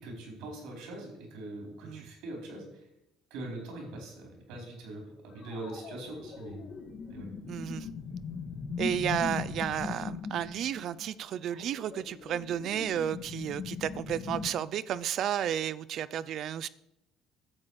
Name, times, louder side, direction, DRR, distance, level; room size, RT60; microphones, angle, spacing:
voice 1, 0.0-2.7 3.3-6.6 7.1-7.3, right 2 dB, 80° right, 4.0 m, -42 dB
sound 1, 5.4-14.5, left 5 dB, 55° left, 1.4 m, -39 dB
voice 2, 7.5-7.9 8.8-16.7, right 10 dB, 60° right, 0.4 m, -32 dB
12.0 x 7.3 x 4.9 m
supercardioid pair, 75°, 0 cm